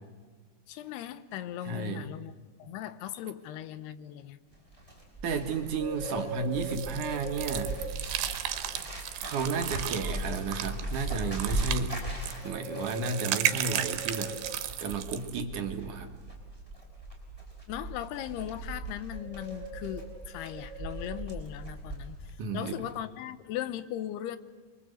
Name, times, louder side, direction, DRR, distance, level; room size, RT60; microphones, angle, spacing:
voice 1, 0.7-2.3 2.6-4.4 17.7-24.4, left 12 dB, 85° left, 13 dB, 3.0 m, -38 dB
voice 2, 1.7-2.1 5.2-7.8 9.2-12.0 12.4-14.4 14.8-16.1 22.4-22.7, right 4 dB, 60° right, 5 dB, 2.7 m, -33 dB
Bird, 4.5-22.4 22.6-22.9, right 1 dB, 10° left, 5.6 m, -38 dB
sound 1, 6.6-15.3, right 12 dB, 85° right, 3.2 m, -34 dB
28.5 x 23.5 x 7.9 m, 1.5 s
omnidirectional pair, 4.5 m